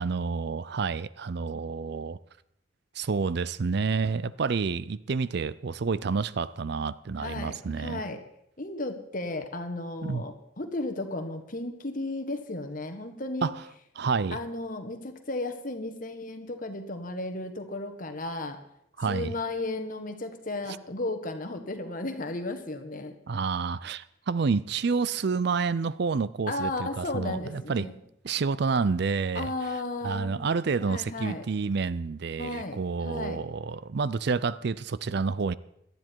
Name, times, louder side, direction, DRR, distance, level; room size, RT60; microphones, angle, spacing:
voice 1, 0.0-2.2 2.9-8.0 10.0-10.2 13.4-13.5 14.0-14.4 19.0-19.3 23.3-27.9 28.2-29.5 30.0-35.5, right 4 dB, 55° right, 0.4 m, -29 dB
voice 2, 7.2-8.2 8.6-13.5 14.3-18.6 19.1-23.1 26.5-28.0 29.3-30.4 30.8-31.5 32.4-33.4, left 2 dB, 40° left, 1.5 m, -34 dB
18.0 x 12.0 x 4.6 m
head